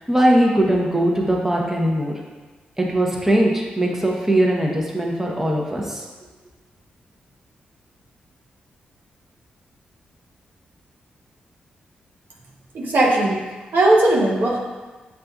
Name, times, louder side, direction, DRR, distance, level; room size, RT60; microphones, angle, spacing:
voice 1, 0.0-2.1 2.8-6.0, right 1 dB, 10° right, -1 dB, 0.8 m, -20 dB
voice 2, 12.7-13.4 13.7-14.6, right 2 dB, 65° right, -3 dB, 0.8 m, -17 dB
6.6 x 2.5 x 2.3 m, 1.3 s
supercardioid pair, 50°, 3 cm